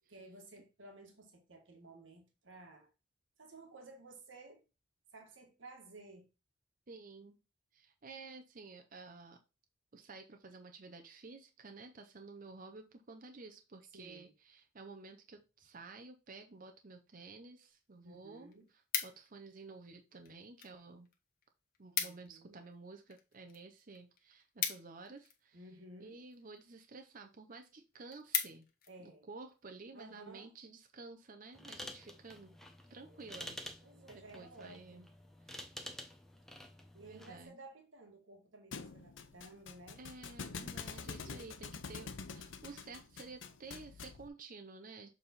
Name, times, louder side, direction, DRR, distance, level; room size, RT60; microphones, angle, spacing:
voice 1, 0.1-2.9 3.4-4.6 5.1-6.3 13.9-14.3 18.0-18.7 22.0-22.6 25.5-26.2 28.9-29.3 29.9-30.5 33.0-33.3 33.8-35.0 36.9-40.0 41.2-41.6, right 2 dB, 80° right, 1.6 m, -55 dB
voice 2, 6.9-7.4 7.7-9.4 9.9-18.5 19.0-21.1 21.8-25.6 26.0-28.7 29.0-32.6 32.9-33.7 34.3-35.0 35.5-35.8 37.0-37.6 40.0-45.1, right 3 dB, 45° right, 0.7 m, -52 dB
sound 1, 17.7-17.8 18.2-19.5 20.2-20.8 21.1-21.2 21.4-21.5 21.7-22.4 22.7-25.6 26.3-26.6 27.1-27.2 27.6-27.7 27.9-28.9 29.4-29.6, left 8 dB, 50° left, 1.1 m, -39 dB
sound 2, 31.5-37.5, equal, ahead, 0.8 m, -50 dB
Thump thud, 38.7-44.3, left 5 dB, 80° left, 0.7 m, -46 dB
6.9 x 3.5 x 4.1 m
head